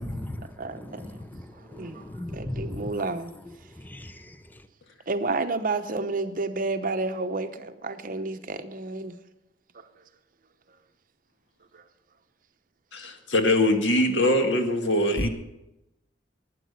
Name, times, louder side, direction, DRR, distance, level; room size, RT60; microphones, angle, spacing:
voice 1, 0.0-3.1 3.5-4.7 15.2-15.3, left 1 dB, 10° left, 0.8 m, -37 dB
voice 2, 0.6-1.2 1.6-3.4 5.1-9.2 9.7-9.9 11.7-11.8, right 3 dB, 50° right, 0.9 m, -31 dB
voice 3, 12.9-15.3, left 1 dB, 90° left, 1.8 m, -22 dB
12.0 x 9.4 x 8.1 m
head